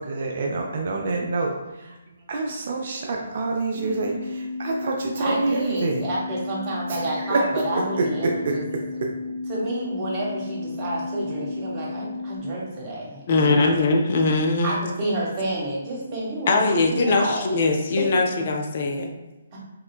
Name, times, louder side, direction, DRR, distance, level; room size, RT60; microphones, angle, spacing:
voice 1, 0.0-2.0 2.3-6.0 6.9-8.5, right 3 dB, 50° right, 1 dB, 0.4 m, -27 dB
sound 1, 3.7-12.4, left 3 dB, 60° left, 1.0 m, -33 dB
voice 2, 5.2-8.6 9.5-13.8 14.6-17.4 18.0-18.1 19.5-19.6, right 1 dB, 30° right, -4 dB, 0.9 m, -29 dB
voice 3, 13.3-14.8 16.5-19.1, left 3 dB, 45° left, 3 dB, 0.4 m, -21 dB
3.2 x 2.9 x 2.3 m, 1.0 s
figure-of-eight pair, 135°, 0 cm